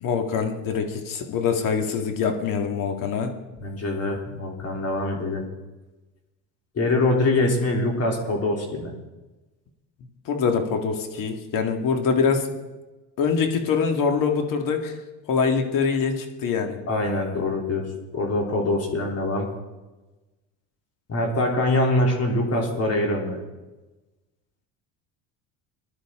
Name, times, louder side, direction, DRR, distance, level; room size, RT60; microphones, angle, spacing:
voice 1, 0.0-3.4 10.3-12.5 13.2-15.0 15.3-16.8, left 5 dB, 60° left, 4 dB, 2.1 m, -24 dB
voice 2, 3.6-5.5 6.8-8.9 16.9-17.9 18.1-19.5 21.1-23.4, left 2 dB, 40° left, 0 dB, 3.4 m, -24 dB
20.0 x 11.5 x 3.8 m, 1.1 s
supercardioid pair, 100°, 37 cm